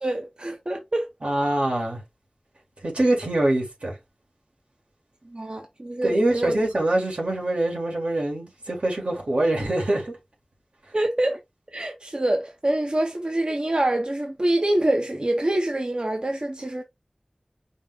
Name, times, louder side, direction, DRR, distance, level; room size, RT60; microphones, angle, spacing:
voice 1, 0.0-1.1 5.2-6.5 10.9-11.4 11.7-16.8, right 1 dB, 50° right, 0.8 m, -25 dB
voice 2, 1.2-2.0 2.8-4.0 6.0-10.1, right 1 dB, 90° right, 2.1 m, -24 dB
5.2 x 2.2 x 3.7 m
wide cardioid pair, 40°, 2 cm